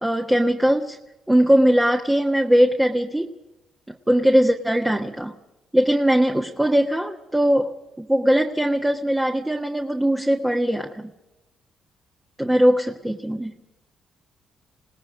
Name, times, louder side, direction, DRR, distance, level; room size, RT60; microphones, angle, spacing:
voice 1, 0.0-1.0 1.3-3.3 3.9-5.4 5.7-11.1 12.4-13.5, equal, 10° right, 3 dB, 1.4 m, -20 dB
27.0 x 18.5 x 5.2 m, 1.0 s
cardioid pair, 90°, 0 cm